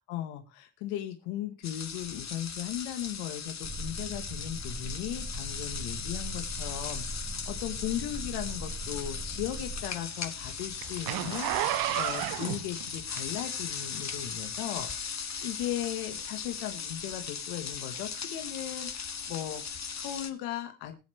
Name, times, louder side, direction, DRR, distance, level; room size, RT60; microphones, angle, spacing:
voice 1, 0.1-21.0, left 12 dB, 90° left, 7 dB, 1.3 m, -37 dB
sound 1, 1.6-20.3, left 6 dB, 50° left, 2.0 m, -38 dB
sound 2, 3.6-9.8, right 1 dB, 45° right, 3.4 m, -40 dB
Zipper (clothing), 8.7-13.7 14.2-14.3, right 15 dB, 80° right, 0.7 m, -32 dB
21.0 x 7.4 x 3.2 m, 0.32 s
hypercardioid pair, 40°, 35 cm